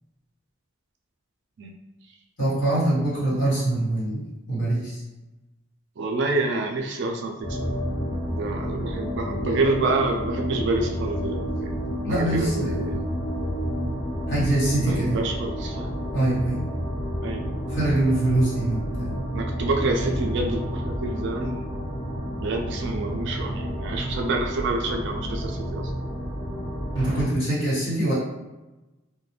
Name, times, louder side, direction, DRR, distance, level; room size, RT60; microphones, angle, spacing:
voice 1, 2.4-4.2 4.5-5.0 12.0-12.8 14.3-15.2 16.1-16.6 17.7-19.2 26.9-28.1, right 1 dB, 60° left, -9 dB, 1.4 m, -23 dB
voice 2, 6.0-7.9 8.3-11.7 12.1-13.0 14.8-16.0 17.2-17.4 19.3-21.6 22.4-25.9, right 2 dB, 60° right, 2 dB, 0.4 m, -28 dB
sound 1, 7.4-27.2, equal, 25° left, 1.2 m, -30 dB
2.3 x 2.1 x 3.1 m, 1.1 s
head